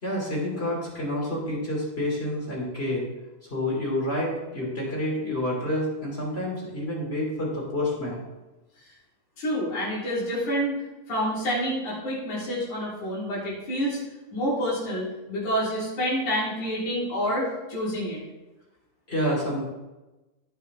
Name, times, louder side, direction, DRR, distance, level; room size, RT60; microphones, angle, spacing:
voice 1, 0.0-3.0 3.4-8.2 19.1-19.7, left 1 dB, 20° left, -4 dB, 2.9 m, -28 dB
voice 2, 9.4-14.0 14.3-18.2, equal, 75° left, -8 dB, 4.9 m, -28 dB
16.0 x 5.7 x 3.6 m, 1.1 s
omnidirectional pair, 3.4 m